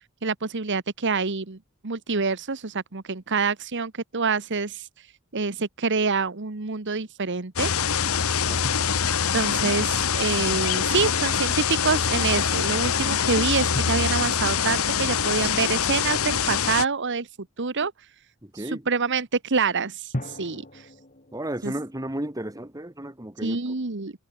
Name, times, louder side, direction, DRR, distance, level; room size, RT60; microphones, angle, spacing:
voice 1, 0.2-1.6 1.8-4.9 5.3-7.7 9.3-17.3 17.6-17.9 18.5-20.9 21.6-21.7 23.4-24.1, right 4 dB, 55° right, 1.3 m, -26 dB
sound 1, 7.6-16.8, left 7 dB, 70° left, 1.3 m, -24 dB
voice 2, 18.4-18.9 21.3-23.7, right 1 dB, 15° right, 2.3 m, -33 dB
sound 2, 20.1-22.0, left 1 dB, 35° left, 4.6 m, -40 dB
head